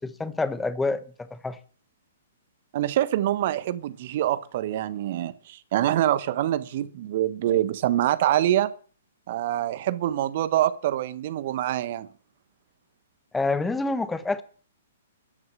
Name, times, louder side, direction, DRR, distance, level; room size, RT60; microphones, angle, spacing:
voice 1, 0.0-1.6 13.3-14.4, left 3 dB, 10° left, 1.2 m, -27 dB
voice 2, 2.7-8.7 9.3-12.1, right 12 dB, 50° right, 1.2 m, -25 dB
13.0 x 11.0 x 7.6 m
figure-of-eight pair, 120°, 0 cm